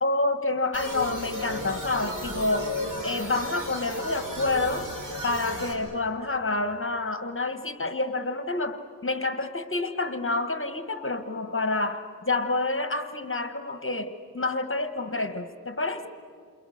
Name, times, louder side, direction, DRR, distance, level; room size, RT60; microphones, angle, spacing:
voice 1, 0.0-2.7 3.0-4.9 5.2-16.1, left 2 dB, 35° left, 9 dB, 1.3 m, -28 dB
sound 1, 0.7-5.7, left 1 dB, 60° right, 5.0 m, -34 dB
29.5 x 28.0 x 6.5 m, 2.4 s
wide cardioid pair, 80°, 35 cm